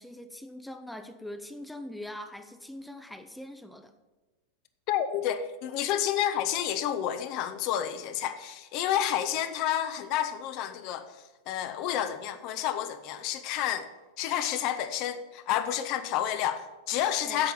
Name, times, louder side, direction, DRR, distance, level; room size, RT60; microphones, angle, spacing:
voice 1, 0.0-3.9 17.2-17.5, left 1 dB, 5° left, 0.8 m, -42 dB
voice 2, 4.9-13.9 14.2-17.5, left 10 dB, 40° left, 1.0 m, -30 dB
10.0 x 7.7 x 8.6 m
figure-of-eight pair, 90°, 0 cm